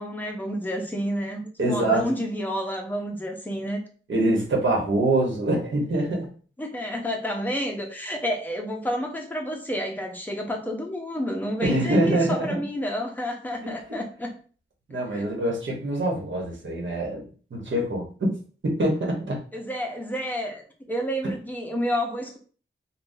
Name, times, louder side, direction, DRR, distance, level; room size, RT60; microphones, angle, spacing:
voice 1, 0.0-3.8 6.6-14.3 15.1-15.2 19.5-22.4, equal, 10° left, 1 dB, 0.7 m, -30 dB
voice 2, 1.6-2.1 4.1-6.3 11.6-12.6 13.6-13.7 14.9-17.2 17.5-18.3 18.6-19.4, right 1 dB, 65° right, -2 dB, 1.1 m, -24 dB
3.6 x 2.3 x 2.7 m, 0.40 s
wide cardioid pair, 110°, 21 cm